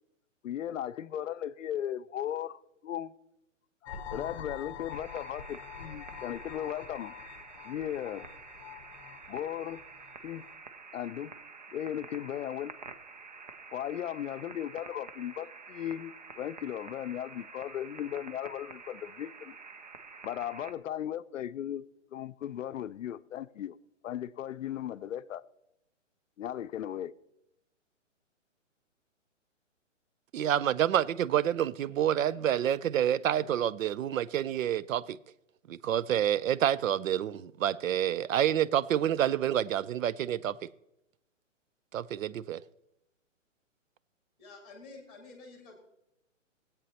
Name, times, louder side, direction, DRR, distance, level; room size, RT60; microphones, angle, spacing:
voice 1, 0.4-3.1 3.8-7.1 7.6-8.3 9.3-9.8 10.2-10.4 10.9-11.3 11.7-12.7 13.7-19.6 20.2-21.8 22.1-23.8 24.0-25.4 26.4-27.1, left 10 dB, 75° left, 0.5 m, -37 dB
sound 1, 3.8-10.6, left 7 dB, 25° left, 0.7 m, -46 dB
sound 2, 4.9-20.7, right 4 dB, 35° right, 0.4 m, -49 dB
voice 2, 30.3-35.2 35.7-40.6 41.9-42.6, right 10 dB, 85° right, 0.5 m, -28 dB
voice 3, 44.4-45.8, left 3 dB, ahead, 1.4 m, -49 dB
17.5 x 8.3 x 2.8 m
hypercardioid pair, 165°, 38 cm